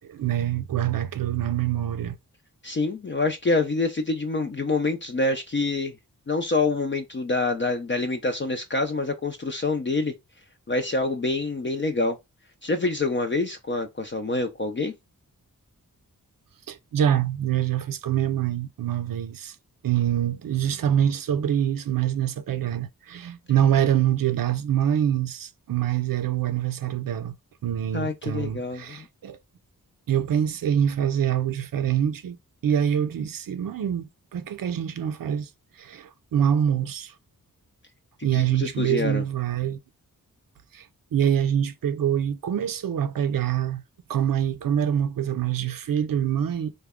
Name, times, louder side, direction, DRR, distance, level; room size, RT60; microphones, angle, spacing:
voice 1, 0.0-2.2 16.7-19.6 19.8-27.4 27.6-29.4 30.1-32.4 32.6-35.5 35.8-37.1 38.2-39.8 40.7-40.9 41.1-43.8 44.1-46.7, right 9 dB, 75° right, 0.5 m, -25 dB
voice 2, 2.6-5.9 6.3-10.1 10.7-12.2 12.6-14.9 27.9-29.1 38.3-39.2, left 3 dB, 35° left, 0.5 m, -26 dB
3.3 x 2.2 x 3.5 m
cardioid pair, 60°, 34 cm